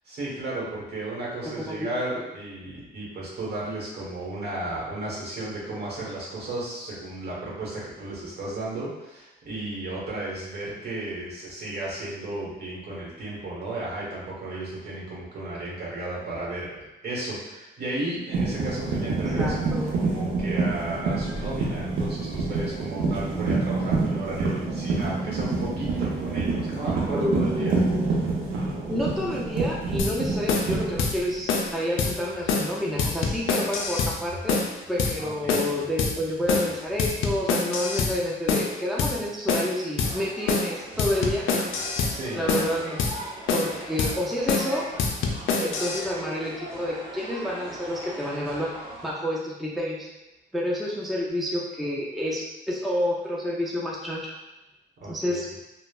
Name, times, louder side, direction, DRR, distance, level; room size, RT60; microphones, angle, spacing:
voice 1, 0.0-27.8 35.2-35.6 42.1-42.6 55.0-55.4, right 2 dB, 55° right, -5 dB, 1.2 m, -34 dB
voice 2, 1.5-1.9 19.4-19.9 27.1-28.0 28.9-34.6 34.9-41.7 42.3-43.0 43.5-44.9 45.6-48.7 49.0-50.1 50.5-54.3 55.1-55.5, left 1 dB, ahead, -3 dB, 0.4 m, -29 dB
sound 1, 18.3-31.8 32.1-32.5 34.3-34.4 36.3-36.9, right 3 dB, 80° right, 0.6 m, -27 dB
sound 2, 30.0-30.1 30.5-30.7 31.0-31.1 31.5-31.7 32.0-32.1 32.5-32.7 33.0-34.1 34.5-34.7 35.0-35.1 35.5-35.7 36.0-36.1 36.5-36.7 37.0-38.1 38.5-38.7 39.0-39.1 39.5-39.7 40.0-40.1 40.5-40.7 41.0-42.1 42.5-42.7 43.0-43.1 43.5-43.7 44.0-44.1 44.5-44.7 45.0-46.0, left 4 dB, 85° left, 0.4 m, -25 dB
sound 3, 40.0-49.1, right 1 dB, 30° right, 0.7 m, -40 dB
3.0 x 2.1 x 2.3 m, 0.98 s
cardioid pair, 90°, 20 cm